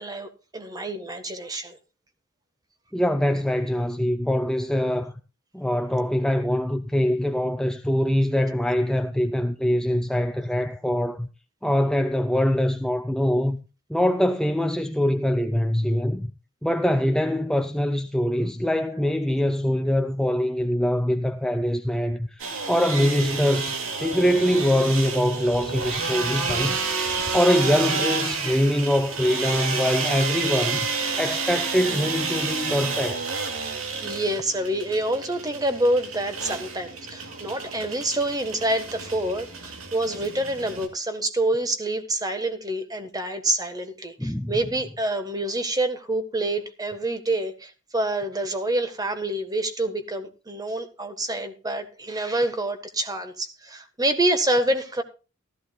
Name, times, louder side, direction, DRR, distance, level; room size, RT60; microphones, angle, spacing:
voice 1, 0.0-1.8 34.0-55.0, right 1 dB, 20° right, 1.5 m, -27 dB
voice 2, 2.9-5.1 5.5-11.3 11.6-13.6 13.9-16.3 16.6-26.8 27.3-30.9 31.2-33.2 44.2-44.5, equal, 5° left, 0.5 m, -23 dB
sound 1, 22.4-40.9, right 4 dB, 70° right, 2.5 m, -30 dB
15.5 x 14.0 x 2.4 m
head